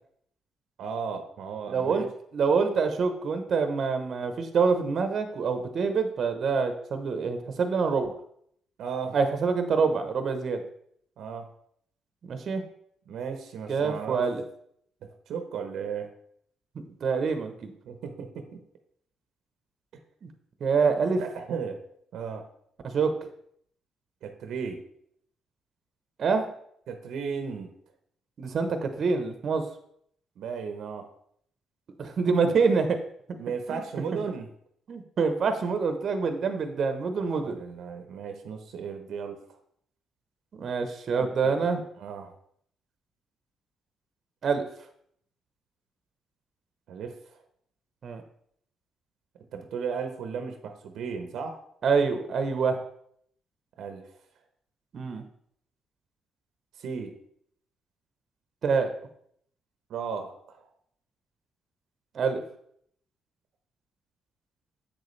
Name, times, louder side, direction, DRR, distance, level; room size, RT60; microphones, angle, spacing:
voice 1, 0.8-2.1 8.8-9.2 11.2-11.5 13.1-14.2 15.3-16.1 17.8-18.6 21.2-21.8 22.1-22.5 24.2-24.8 26.9-27.7 30.4-31.1 33.4-34.5 37.2-39.4 41.1-41.7 42.0-42.3 46.9-47.4 49.5-51.6 53.8-54.1 56.8-57.2 59.9-60.7, right 6 dB, 75° right, 6 dB, 0.9 m, -35 dB
voice 2, 1.7-2.0 2.3-8.1 9.1-10.6 12.2-12.6 13.7-14.4 16.8-17.7 20.6-21.2 22.8-23.1 26.2-26.5 28.4-29.7 32.0-33.0 33.7-33.8 34.9-37.6 40.6-41.8 44.4-44.6 48.0-48.2 51.8-52.8 54.9-55.2 58.6-58.9 62.1-62.4, right 5 dB, 55° right, 7 dB, 0.9 m, -26 dB
7.7 x 6.7 x 3.3 m, 0.67 s
cardioid pair, 90°, 0 cm